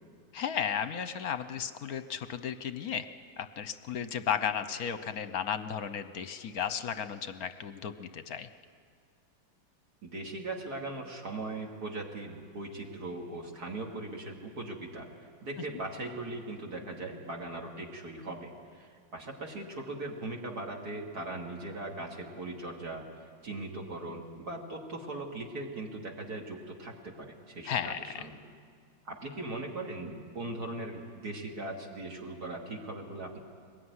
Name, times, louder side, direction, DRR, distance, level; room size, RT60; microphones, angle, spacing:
voice 1, 0.3-3.1 3.4-8.5 27.7-28.2, left 8 dB, 55° left, 11 dB, 1.1 m, -34 dB
voice 2, 10.0-15.1 15.4-28.4 29.0-33.4, right 2 dB, 50° right, 0 dB, 3.0 m, -39 dB
23.5 x 20.5 x 9.7 m, 2.1 s
omnidirectional pair, 2.2 m